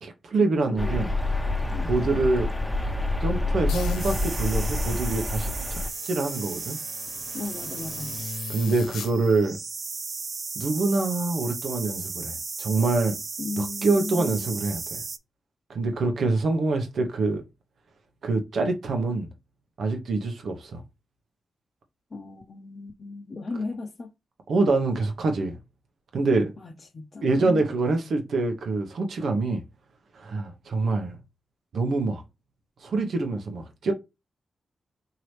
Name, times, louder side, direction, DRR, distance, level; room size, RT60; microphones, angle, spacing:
voice 1, 0.0-1.1 1.9-2.5 3.2-5.8 6.1-6.8 8.5-9.6 10.5-13.2 13.6-15.0 15.7-17.4 18.2-19.3 19.8-20.8 24.5-25.6 26.1-26.5 27.2-29.6 30.1-31.2 31.7-32.2 32.8-33.9, right 3 dB, 75° right, 1.1 m, -25 dB
voice 2, 0.7-1.0 1.7-2.0 7.3-8.2 13.4-14.5 22.1-24.1 26.6-27.6, left 3 dB, 55° left, 0.7 m, -36 dB
sound 1, 0.8-5.9, left 2 dB, 10° left, 1.0 m, -27 dB
sound 2, 3.7-9.1, left 4 dB, 85° left, 1.1 m, -40 dB
sound 3, 4.0-15.2, right 4 dB, 55° right, 0.5 m, -35 dB
4.7 x 3.0 x 3.2 m
supercardioid pair, 40°, 0 cm